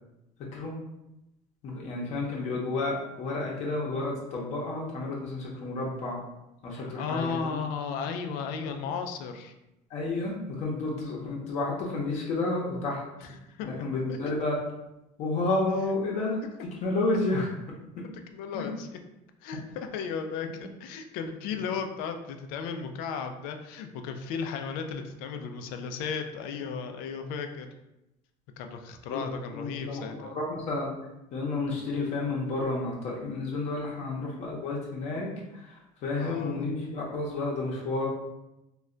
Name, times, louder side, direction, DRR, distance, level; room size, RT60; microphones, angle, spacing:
voice 1, 1.6-6.2 6.6-7.6 8.6-8.8 9.9-13.0 13.7-14.6 15.2-16.4 16.8-17.5 18.5-18.8 20.5-20.6 29.1-29.2 29.5-30.9 31.3-38.1, left 2 dB, 50° left, -3 dB, 0.7 m, -31 dB
voice 2, 6.7-9.5 13.5-13.8 14.1-14.2 17.1-17.2 18.3-19.0 19.4-27.8 28.6-30.4 36.1-36.6, left 6 dB, 80° left, 6 dB, 0.4 m, -35 dB
2.2 x 2.2 x 3.7 m, 0.92 s
cardioid pair, 140°, 15 cm